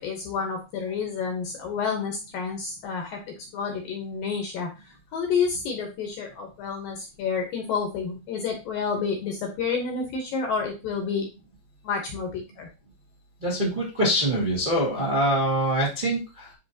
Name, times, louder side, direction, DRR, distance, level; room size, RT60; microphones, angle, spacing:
voice 1, 0.0-3.2 3.5-11.3 11.8-12.7, left 5 dB, 70° left, 2 dB, 2.3 m, -29 dB
voice 2, 13.4-16.5, right 1 dB, 45° right, -6 dB, 0.6 m, -24 dB
10.5 x 3.7 x 2.8 m, 0.28 s
omnidirectional pair, 5.3 m